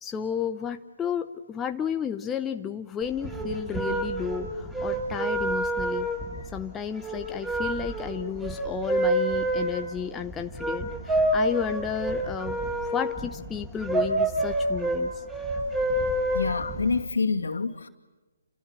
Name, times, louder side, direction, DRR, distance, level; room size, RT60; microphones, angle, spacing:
voice 1, 0.0-6.1 6.5-15.1, left 8 dB, 10° left, 0.9 m, -32 dB
sound 1, 3.0-17.0, right 1 dB, 10° right, 7.8 m, -28 dB
voice 2, 16.3-17.9, left 4 dB, 70° left, 2.6 m, -27 dB
30.0 x 28.0 x 6.3 m
figure-of-eight pair, 135°, 0 cm